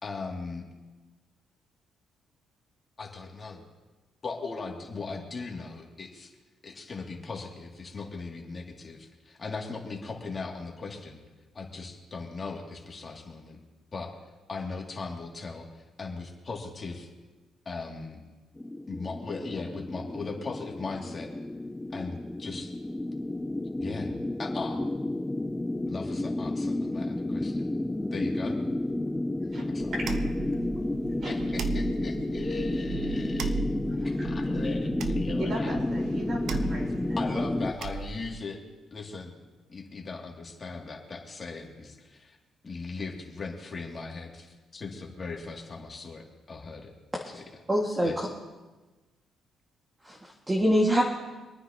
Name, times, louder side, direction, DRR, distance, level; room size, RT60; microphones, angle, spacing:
voice 1, 0.0-0.6 3.0-3.6 4.2-6.3 6.6-11.2 11.5-13.6 13.9-14.1 14.5-17.1 17.7-18.2 18.9-21.3 21.9-22.7 23.8-24.1 24.4-24.8 25.8-27.7 28.1-28.6 29.7-29.9 31.2-33.6 34.2-35.7 37.2-38.6 38.9-39.3 39.7-42.4 42.6-46.9 47.2-47.4 48.0-48.1, left 4 dB, 35° left, -1 dB, 2.4 m, -38 dB
sound 1, 18.6-37.7, left 1 dB, 10° left, 0.4 m, -31 dB
sound 2, 29.8-38.4, right 5 dB, 80° right, 0.7 m, -37 dB
voice 2, 29.9-30.3 31.0-31.3 34.0-34.3 35.4-37.2 38.0-38.1, right 1 dB, 50° right, -1 dB, 4.2 m, -38 dB
voice 3, 47.7-48.3 50.0-51.0, equal, 15° right, -1 dB, 1.8 m, -24 dB
26.0 x 9.7 x 2.9 m, 1.2 s
cardioid pair, 90°, 0 cm